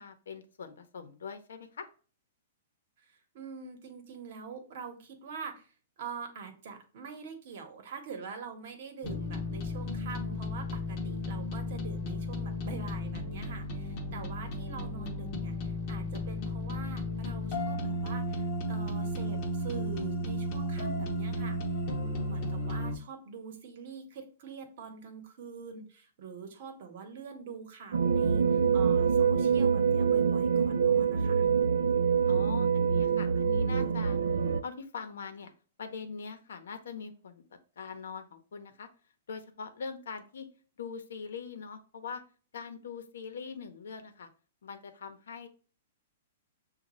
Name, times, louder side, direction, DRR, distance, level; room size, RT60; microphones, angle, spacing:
voice 1, 0.0-1.9 13.9-14.4 32.2-34.2 34.6-35.5 35.8-37.4 37.8-38.9 39.3-40.5 40.8-42.2 42.5-44.3 44.6-45.5, left 5 dB, 85° left, 8 dB, 0.8 m, -42 dB
voice 2, 3.1-21.6 22.0-31.4, right 5 dB, 45° right, 5 dB, 0.9 m, -44 dB
sound 1, 9.0-23.0, equal, 30° left, 0.7 m, -34 dB
sound 2, 27.9-34.6, right 6 dB, 85° right, 0.4 m, -25 dB
6.3 x 2.2 x 3.0 m, 0.39 s
hypercardioid pair, 170°, 0 cm